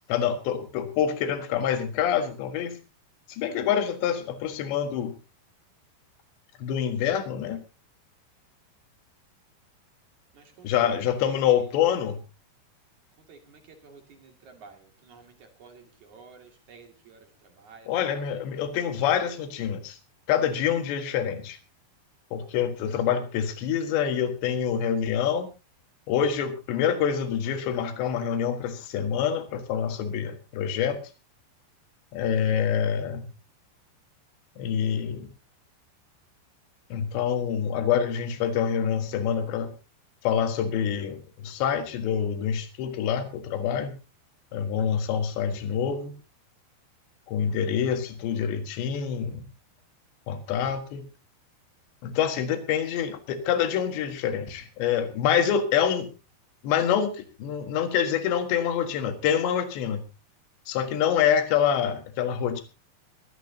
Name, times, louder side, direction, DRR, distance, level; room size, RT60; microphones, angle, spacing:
voice 1, 0.1-2.8 3.3-5.2 6.6-7.6 10.6-12.2 17.9-20.0 20.3-21.6 22.3-25.5 26.1-31.0 32.1-33.3 34.6-35.3 36.9-39.7 40.2-44.0 44.5-46.1 47.3-49.5 50.3-51.1 52.0-56.1 56.6-60.0 60.7-62.6, left 8 dB, 75° left, 3.9 m, -26 dB
voice 2, 10.3-10.7 11.2-11.3 13.3-15.3 15.6-17.2 17.6-17.9, right 5 dB, 45° right, 3.3 m, -51 dB
22.5 x 14.0 x 2.8 m
omnidirectional pair, 5.2 m